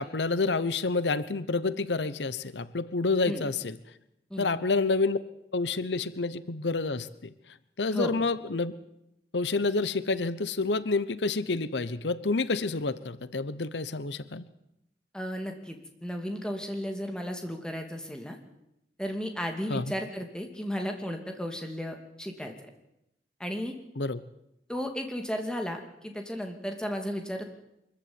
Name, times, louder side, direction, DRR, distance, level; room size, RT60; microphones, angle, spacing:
voice 1, 0.0-3.8 4.4-5.2 5.5-7.1 7.8-8.7 9.3-14.4 19.7-19.8 24.0-24.2, left 3 dB, 85° left, 15 dB, 1.0 m, -28 dB
voice 2, 15.1-18.4 19.0-22.7 23.4-23.7 24.7-27.4, equal, 5° left, 4 dB, 2.5 m, -34 dB
24.0 x 14.5 x 9.7 m, 0.85 s
head